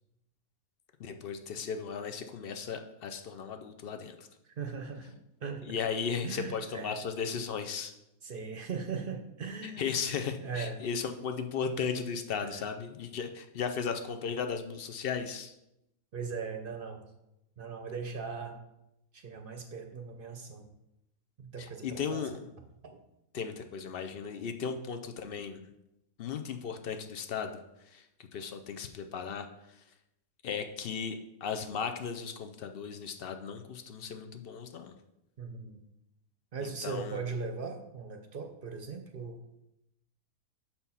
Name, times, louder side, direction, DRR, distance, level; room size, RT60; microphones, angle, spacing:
voice 1, 1.0-4.3 5.6-7.9 9.6-15.5 21.6-22.5 23.3-25.6 26.2-27.6 27.9-29.5 30.4-34.9 36.6-37.2, left 6 dB, 65° left, 7 dB, 0.6 m, -36 dB
voice 2, 4.6-5.6 6.2-7.0 8.2-9.8 10.4-10.8 12.4-12.6 16.1-17.1 17.6-18.6 19.1-20.7 21.4-22.4 22.8-23.0 35.4-35.8 36.5-39.4, right 5 dB, 50° right, 5 dB, 0.7 m, -39 dB
6.9 x 4.4 x 5.5 m, 0.87 s
omnidirectional pair, 1.5 m